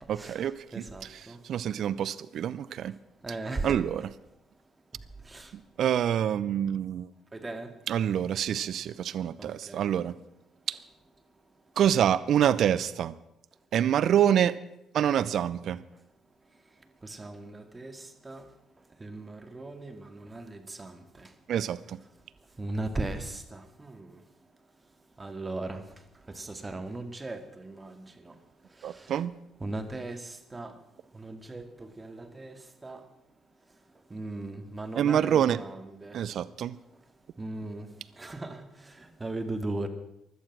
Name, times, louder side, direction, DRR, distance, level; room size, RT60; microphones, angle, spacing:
voice 1, 0.1-2.9 3.6-4.1 5.5-7.1 7.9-10.2 10.7-10.8 11.8-13.1 13.7-14.6 14.9-15.8 21.5-22.0 28.8-29.3 35.0-35.6 36.1-36.8, right 9 dB, 65° right, 17 dB, 0.6 m, -27 dB
voice 2, 0.7-1.4 3.2-3.8 5.3-5.5 7.3-7.7 9.4-9.8 17.0-18.4 19.0-21.3 22.6-24.1 25.2-25.8 26.4-28.3 29.6-30.7 31.1-32.5 32.8-33.0 34.1-36.2 37.4-37.9 38.2-38.6 39.2-39.9, right 2 dB, 25° right, 8 dB, 2.2 m, -37 dB
16.5 x 11.5 x 6.1 m, 0.84 s
hypercardioid pair, 55°, 0 cm